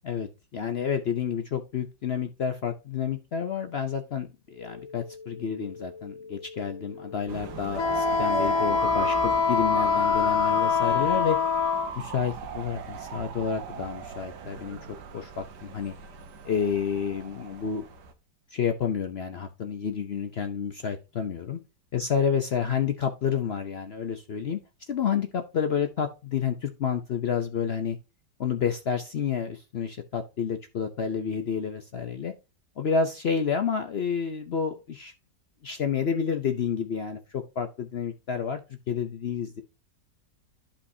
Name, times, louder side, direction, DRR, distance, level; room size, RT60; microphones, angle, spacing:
voice 1, 0.0-11.4 12.0-16.0 16.4-17.8 18.5-21.6 21.9-24.6 24.9-28.0 28.4-32.3 32.8-35.1 35.6-38.6 38.9-39.6, left 7 dB, 75° left, 8 dB, 0.5 m, -29 dB
sound 1, 4.5-9.5, left 4 dB, 35° right, 1.5 m, -45 dB
sound 2, 7.3-18.1, right 7 dB, 70° right, 1.6 m, -37 dB
Wind instrument woodwind instrument, 7.8-11.9, left 6 dB, 55° left, 1.5 m, -24 dB
11.5 x 5.3 x 2.7 m, 0.28 s
omnidirectional pair, 1.9 m